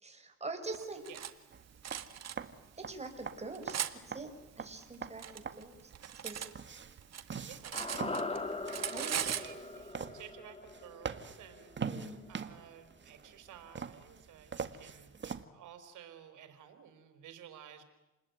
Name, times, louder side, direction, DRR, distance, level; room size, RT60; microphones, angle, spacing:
voice 1, 0.0-1.0 2.8-3.8 4.1-6.5 8.9-9.2 11.8-12.3, right 3 dB, 20° right, 4 dB, 5.9 m, -44 dB
Cutlery silverware, 0.7-1.3 1.8-2.4 3.0-3.9 4.8-6.5 6.8-8.4 8.7-9.5, right 9 dB, 60° right, 2.0 m, -38 dB
sound 1, 1.5-15.4, right 6 dB, 40° right, 1.8 m, -44 dB
voice 2, 7.4-8.1 8.6-11.7 12.3-15.1 15.5-17.8, right 9 dB, 80° right, 9 dB, 4.3 m, -53 dB
sound 2, 7.7-12.0 12.3-12.4, left 3 dB, 20° left, 2.7 m, -41 dB
29.5 x 20.5 x 9.5 m, 1.0 s
cardioid pair, 90°, 30 cm